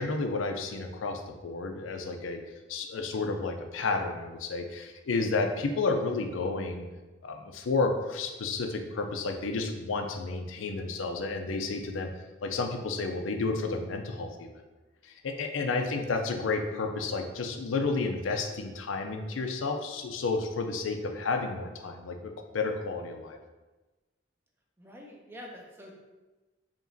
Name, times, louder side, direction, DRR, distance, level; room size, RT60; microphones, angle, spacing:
voice 1, 0.0-2.4 2.7-6.9 7.2-12.1 12.4-14.5 15.0-23.4, left 3 dB, 90° left, 5 dB, 0.5 m, -31 dB
voice 2, 15.7-16.0 24.8-25.9, left 1 dB, 10° right, -1 dB, 0.5 m, -47 dB
4.9 x 2.9 x 2.6 m, 1.2 s
head